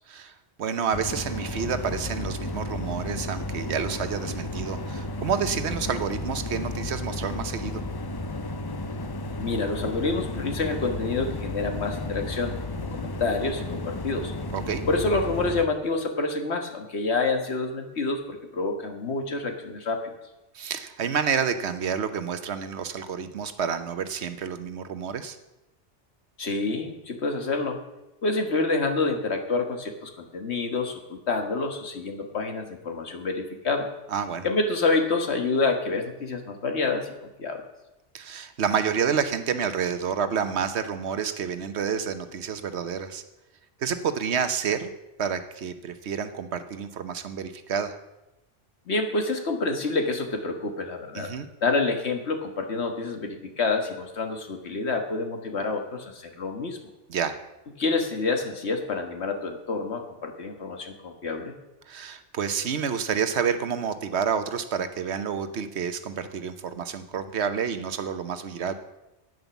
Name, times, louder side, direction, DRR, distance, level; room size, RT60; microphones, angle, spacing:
voice 1, 0.6-7.8 14.5-14.8 20.5-25.4 34.1-34.5 38.1-43.2 43.8-44.9 45.2-48.0 51.1-51.5 57.1-57.4 61.9-68.7, right 7 dB, 70° right, 10 dB, 1.1 m, -29 dB
sound 1, 0.9-15.7, left 2 dB, 40° left, 0.3 m, -33 dB
voice 2, 9.4-14.3 14.9-20.1 26.4-27.8 28.2-33.9 34.4-37.1 37.4-37.6 48.9-51.3 51.6-56.8 57.8-61.5, left 3 dB, 70° left, 4 dB, 1.7 m, -28 dB
9.4 x 9.2 x 7.0 m, 0.96 s
omnidirectional pair, 1.2 m